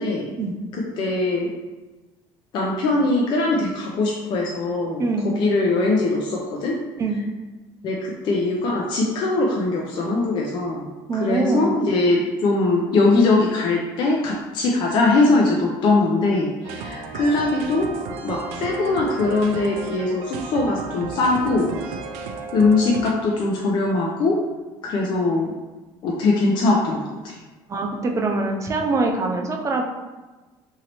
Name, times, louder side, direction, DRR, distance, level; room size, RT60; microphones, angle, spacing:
voice 1, 0.0-0.3 0.7-1.5 2.5-6.7 7.8-10.9 11.2-17.9 18.2-21.8 22.5-24.4 24.8-25.5 26.0-27.4, left 3 dB, 55° left, -2 dB, 0.5 m, -21 dB
voice 2, 5.0-5.3 7.0-7.2 11.1-11.7 27.7-29.8, right 3 dB, 30° right, 2 dB, 0.5 m, -23 dB
sound 1, 16.6-23.1, right 4 dB, 85° right, 0.4 m, -33 dB
3.0 x 2.7 x 2.9 m, 1.2 s
cardioid pair, 110°, 10 cm